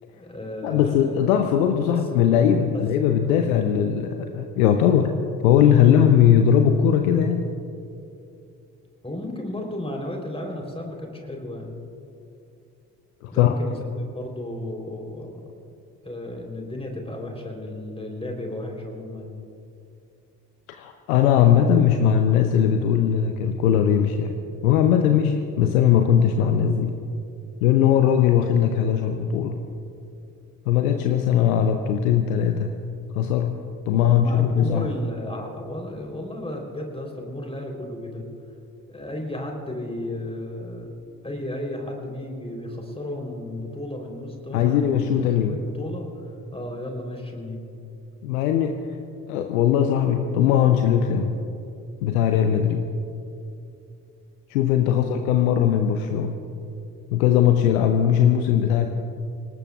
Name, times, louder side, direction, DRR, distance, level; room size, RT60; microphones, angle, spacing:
voice 1, 0.1-1.1 1.9-2.0 2.7-2.8 9.0-11.8 13.3-15.4 16.0-19.3 34.0-38.2 38.9-40.9 41.2-45.1 45.4-47.7 54.9-55.2, left 1 dB, 15° left, 1 dB, 3.7 m, -34 dB
voice 2, 0.6-5.2 5.4-7.5 13.2-13.5 20.7-27.0 27.6-29.6 30.7-32.7 33.1-33.6 33.9-34.9 44.5-45.6 48.2-48.8 49.3-51.4 52.0-52.9 54.5-56.4 57.1-58.9, left 9 dB, 70° left, 6 dB, 0.8 m, -19 dB
27.5 x 18.5 x 2.4 m, 2.6 s
figure-of-eight pair, 40°, 44 cm